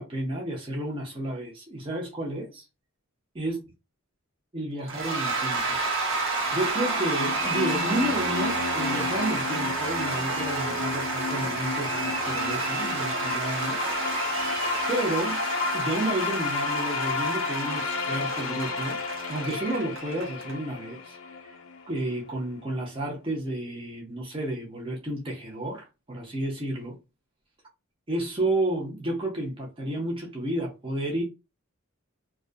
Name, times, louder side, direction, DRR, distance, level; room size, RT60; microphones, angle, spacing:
voice 1, 0.0-2.6 3.3-3.6 4.5-5.8 6.5-14.0 14.9-15.4 15.7-19.0 19.3-21.2 21.4-21.6 21.9-27.0 28.1-31.2, right 1 dB, 25° right, 0.6 m, -31 dB
Cheering / Applause / Crowd, 4.9-20.5, right 3 dB, 60° right, 1.0 m, -30 dB
sound 1, 6.4-22.4, left 5 dB, 75° left, 0.5 m, -32 dB
2.4 x 2.2 x 2.4 m
head